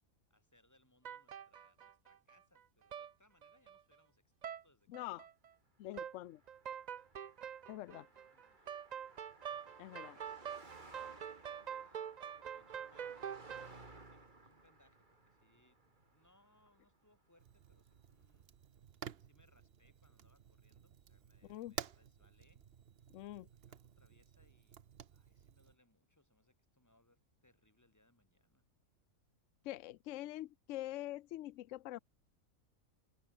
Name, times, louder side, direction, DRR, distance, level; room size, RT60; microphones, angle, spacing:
voice 1, 0.3-5.2 8.0-8.7 9.5-12.0 12.5-13.3 13.8-18.5 19.2-22.6 23.5-24.8 25.1-28.6, left 1 dB, 10° left, 2.8 m, -73 dB
sound 1, 1.0-2.6 2.9-3.1 3.4-3.9 4.4-4.6 4.9-5.5 5.9-6.2 6.5-13.8, right 8 dB, 70° right, 0.4 m, -46 dB
voice 2, 4.9-5.2 5.8-6.4 7.7-8.1 9.8-10.2 21.4-21.8 23.1-23.5 29.6-32.0, left 15 dB, 70° left, 0.9 m, -45 dB
Car passing by, 6.0-17.5, right 2 dB, 35° right, 2.9 m, -60 dB
Fire, 17.4-25.8, right 8 dB, 50° right, 1.0 m, -52 dB
omnidirectional pair, 1.5 m